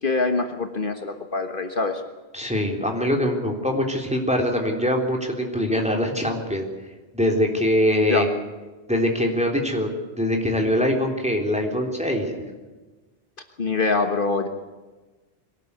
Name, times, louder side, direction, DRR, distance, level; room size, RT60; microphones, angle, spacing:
voice 1, 0.0-2.0 8.1-8.2 13.6-14.5, left 3 dB, 55° left, 5 dB, 1.6 m, -24 dB
voice 2, 2.3-6.6 7.1-8.3 8.9-12.5, equal, 5° right, 1 dB, 3.6 m, -23 dB
23.0 x 18.0 x 8.3 m, 1.2 s
omnidirectional pair, 1.1 m